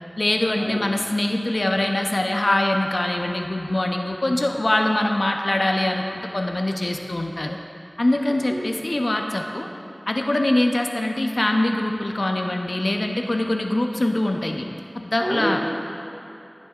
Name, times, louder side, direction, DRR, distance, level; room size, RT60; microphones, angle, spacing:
voice 1, 0.2-7.6 8.0-9.7 10.1-14.7 14.9-15.6, left 1 dB, 70° left, 3 dB, 0.5 m, -23 dB
voice 2, 15.2-15.6, equal, 30° right, -3 dB, 1.5 m, -27 dB
14.5 x 6.5 x 2.4 m, 2.8 s
wide cardioid pair, 40°, 0 cm